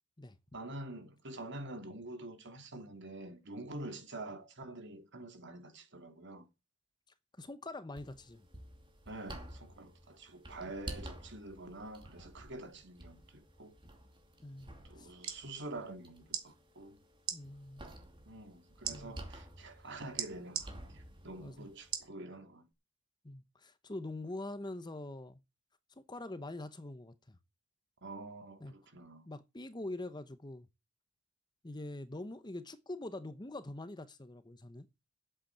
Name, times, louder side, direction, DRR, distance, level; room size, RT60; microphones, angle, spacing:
voice 1, 0.5-6.5 9.1-13.8 14.9-17.0 18.3-22.7 28.0-29.3, right 2 dB, 55° right, 2.6 m, -47 dB
voice 2, 7.4-8.5 14.4-15.1 17.3-17.8 18.9-19.2 21.4-21.7 23.2-25.4 26.0-27.4 28.6-28.7 29.2-30.7 31.6-34.9, left 2 dB, 20° left, 0.9 m, -44 dB
sound 1, 7.9-22.1, right 1 dB, 25° right, 2.6 m, -51 dB
sound 2, 15.0-15.4 16.3-16.5 17.2-17.4 18.8-19.0 20.2-20.7 21.9-22.1 22.7-22.8, right 10 dB, 85° right, 2.3 m, -37 dB
8.5 x 8.1 x 8.7 m
head